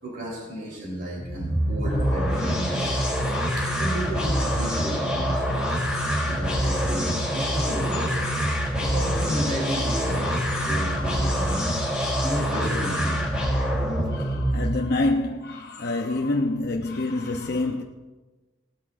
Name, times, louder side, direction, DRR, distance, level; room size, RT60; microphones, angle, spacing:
voice 1, 0.0-3.1 3.6-5.7 6.0-8.2 8.8-10.4 10.6-11.7 12.2-13.2, right 1 dB, 55° right, 3.6 m, -33 dB
sound 1, 1.2-15.0, equal, 5° right, 4.5 m, -25 dB
voice 2, 10.3-11.1 11.4-12.2 14.1-17.8, left 2 dB, 60° left, 0.8 m, -29 dB
19.0 x 12.5 x 2.6 m
head